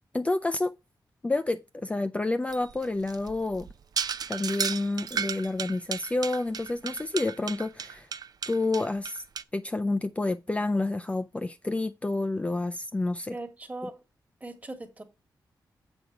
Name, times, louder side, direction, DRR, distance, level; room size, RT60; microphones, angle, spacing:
voice 1, 0.1-0.7 1.2-3.7 4.3-8.1 8.5-9.2 9.5-13.4, left 2 dB, 15° left, 0.4 m, -29 dB
sound 1, 2.5-9.4, right 7 dB, 65° right, 0.5 m, -34 dB
voice 2, 13.3-14.0 14.4-15.0, right 2 dB, 20° right, 1.4 m, -39 dB
7.9 x 5.1 x 4.5 m
wide cardioid pair, 100°, 7 cm